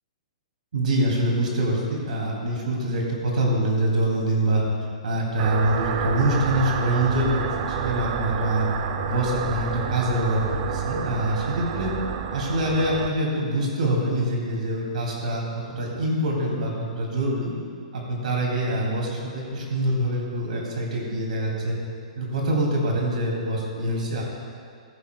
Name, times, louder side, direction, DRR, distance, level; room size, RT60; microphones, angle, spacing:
voice 1, 0.7-4.6 5.0-7.4 7.7-8.7 9.0-11.9 12.3-17.5 17.9-21.8 22.2-24.2, right 1 dB, 75° right, -2 dB, 2.5 m, -25 dB
sound 1, 5.4-13.1, right 7 dB, 30° right, 0.5 m, -29 dB
14.0 x 12.5 x 2.2 m, 2.4 s
hypercardioid pair, 175°, 4 cm